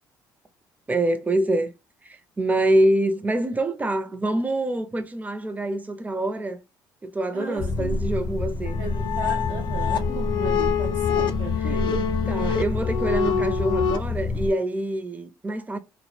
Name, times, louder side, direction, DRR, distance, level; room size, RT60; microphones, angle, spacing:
voice 1, 0.9-1.7 2.1-6.6 7.0-8.8 10.1-10.3 11.6-11.8 12.3-15.8, right 1 dB, 20° right, 0.4 m, -25 dB
voice 2, 7.3-8.1 8.7-12.0, right 5 dB, 75° right, 0.5 m, -36 dB
sound 1, 7.6-14.5, left 3 dB, 40° left, 0.7 m, -28 dB
sound 2, 8.7-14.0, left 7 dB, 65° left, 0.3 m, -26 dB
2.1 x 2.0 x 3.1 m
supercardioid pair, 65°, 8 cm